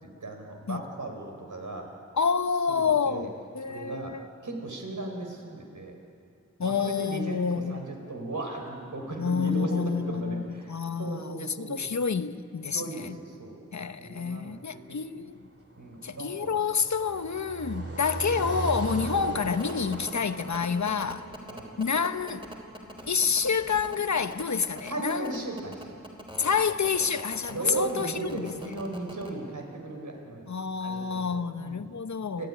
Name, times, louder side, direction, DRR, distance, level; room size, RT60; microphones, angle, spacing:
voice 1, 0.0-1.9 2.8-3.3 3.7-4.1 4.4-5.9 6.6-10.7 11.0-11.9 12.7-13.1 13.4-13.6 14.0-15.0 15.8-16.6 17.8-18.0 21.5-21.7 24.9-26.0 27.5-30.5 30.8-31.9 32.3-32.5, right 2 dB, 75° right, 4.7 m, -36 dB
voice 2, 2.1-4.3 6.6-7.8 9.2-13.2 13.7-15.4 16.0-21.3 21.8-22.5 23.1-25.4 26.4-28.5 30.5-32.5, left 6 dB, 65° left, 0.9 m, -28 dB
Car passing by, 15.5-22.7, right 2 dB, 50° right, 2.9 m, -38 dB
sound 1, 19.6-29.3, right 1 dB, 15° right, 4.1 m, -42 dB
29.0 x 12.5 x 10.0 m
wide cardioid pair, 65°, 30 cm